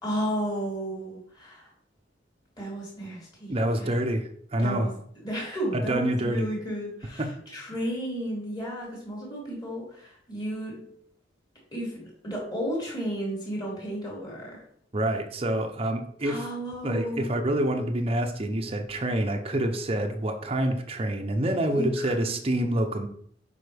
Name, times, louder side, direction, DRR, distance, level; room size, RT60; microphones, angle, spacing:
voice 1, 0.0-1.7 2.6-3.5 3.8-4.0 4.6-4.9 5.2-7.3 7.5-10.9 11.7-14.6 16.2-17.3 21.7-22.3, equal, 25° left, -4 dB, 3.3 m, -33 dB
voice 2, 3.5-4.9 5.7-6.5 7.2-7.3 14.9-16.5 16.8-23.1, right 1 dB, 30° right, 4 dB, 0.8 m, -27 dB
8.0 x 5.4 x 3.4 m, 0.63 s
head